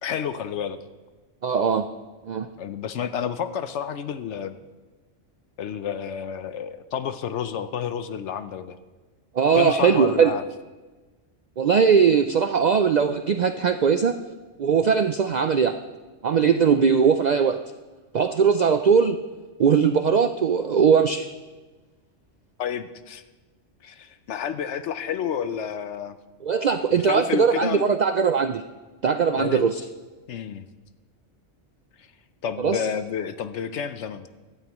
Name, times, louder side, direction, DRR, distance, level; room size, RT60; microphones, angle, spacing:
voice 1, 0.0-0.8 2.6-4.6 5.6-8.8 9.5-10.4 22.6-23.2 23.8-26.2 26.9-27.9 29.3-29.7 30.3-30.7 32.0-32.1 32.4-34.3, left 8 dB, 70° left, 11 dB, 0.9 m, -30 dB
voice 2, 1.4-1.9 2.3-2.5 9.3-10.3 11.6-14.1 14.6-15.8 16.2-17.6 18.1-19.2 19.6-21.3 26.4-28.6 29.0-29.8 32.6-32.8, right 6 dB, 70° right, 9 dB, 0.4 m, -20 dB
16.5 x 12.5 x 3.0 m, 1.3 s
omnidirectional pair, 1.3 m